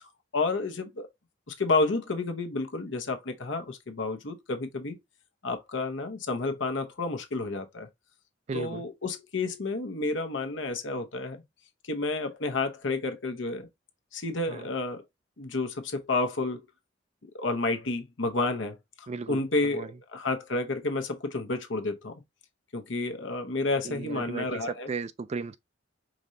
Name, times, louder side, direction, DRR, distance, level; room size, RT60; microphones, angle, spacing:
voice 1, 0.3-1.1 1.5-5.0 5.4-7.9 8.5-11.4 11.9-13.7 14.1-15.0 15.4-16.6 17.3-22.1 22.7-24.9, left 3 dB, 70° left, 1.0 m, -30 dB
voice 2, 8.5-8.9 14.5-14.7 19.1-19.9 23.8-25.6, right 4 dB, 35° right, 0.3 m, -36 dB
5.2 x 3.2 x 2.7 m
head